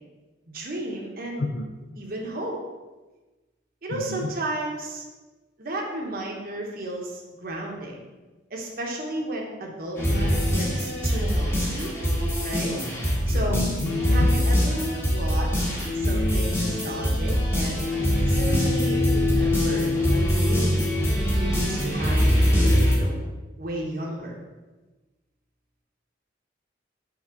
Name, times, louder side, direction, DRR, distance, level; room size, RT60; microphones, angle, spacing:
voice 1, 0.5-1.5 2.0-2.6 3.8-5.0 5.6-8.1 8.5-11.9 12.4-12.8 13.3-13.6 14.1-17.8 18.3-21.0 21.4-23.2 23.6-24.4, right 1 dB, 50° right, -1 dB, 1.0 m, -33 dB
voice 2, 3.9-4.3 13.3-14.3, left 2 dB, 60° left, 3 dB, 0.5 m, -30 dB
sound 1, 9.9-23.0, equal, 15° left, 1.4 m, -23 dB
6.0 x 3.7 x 5.7 m, 1.2 s
head